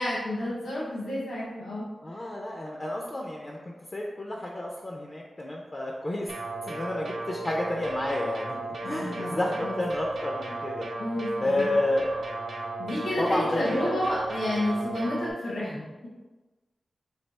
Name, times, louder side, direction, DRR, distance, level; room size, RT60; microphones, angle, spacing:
voice 1, 0.0-1.9 8.8-9.7 11.0-11.7 12.8-16.1, left 1 dB, 75° left, -8 dB, 1.2 m, -30 dB
voice 2, 2.0-6.3 6.7-8.6 8.8-12.1 13.2-13.9, left 1 dB, 30° left, -1 dB, 0.4 m, -30 dB
sound 1, 6.3-15.3, right 2 dB, 75° right, 0.7 m, -35 dB
3.3 x 2.7 x 4.1 m, 1.2 s
wide cardioid pair, 135°, 0 cm